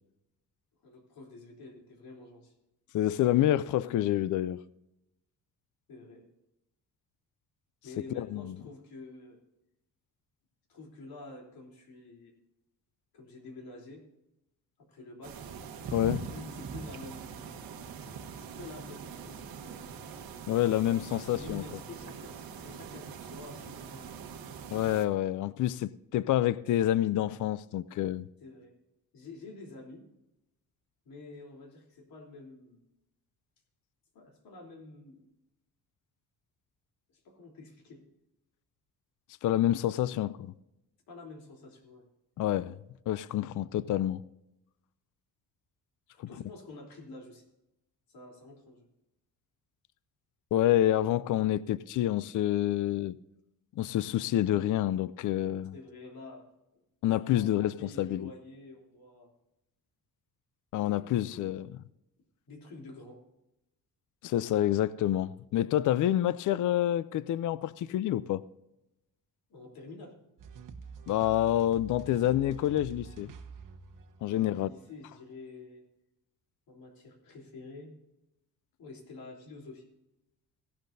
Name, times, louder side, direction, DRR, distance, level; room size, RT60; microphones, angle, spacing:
voice 1, 0.8-2.5 5.9-6.2 7.8-9.4 10.7-12.3 13.1-14.0 14.8-15.4 16.2-17.6 18.4-19.9 21.3-24.2 28.4-28.7 29.1-30.0 31.0-32.8 34.1-35.3 37.1-38.0 41.1-42.0 46.1-47.4 48.1-48.9 55.7-56.5 56.7-56.8 57.3-59.3 60.8-61.6 62.5-63.2 69.5-70.2 74.3-75.8 76.7-77.9 78.8-79.8, left 3 dB, 90° left, 3.5 m, -48 dB
voice 2, 2.9-4.6 8.1-8.6 15.9-16.3 20.5-21.6 24.7-28.3 39.4-40.5 42.4-42.8 43.1-44.2 50.5-53.1 53.8-55.7 57.0-58.3 60.7-61.8 64.2-68.4 71.1-73.3 74.2-74.7, left 13 dB, 60° left, 0.5 m, -28 dB
sound 1, 15.2-25.1, right 6 dB, 90° right, 1.3 m, -43 dB
sound 2, 70.4-75.3, right 5 dB, 65° right, 1.1 m, -47 dB
16.5 x 12.0 x 2.7 m
cardioid pair, 150°, 35 cm